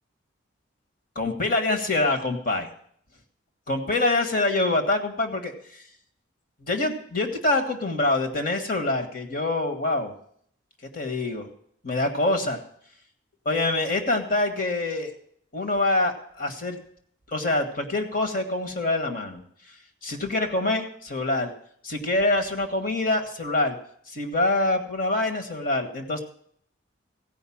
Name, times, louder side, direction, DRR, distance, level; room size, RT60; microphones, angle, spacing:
voice 1, 1.1-2.7 3.7-5.8 6.6-10.1 10.9-11.5 11.8-12.6 13.4-15.1 15.5-16.8 17.3-19.4 20.0-21.5 21.8-23.8 24.1-26.2, left 2 dB, 45° left, 5 dB, 1.6 m, -25 dB
15.5 x 5.3 x 8.6 m, 0.63 s
head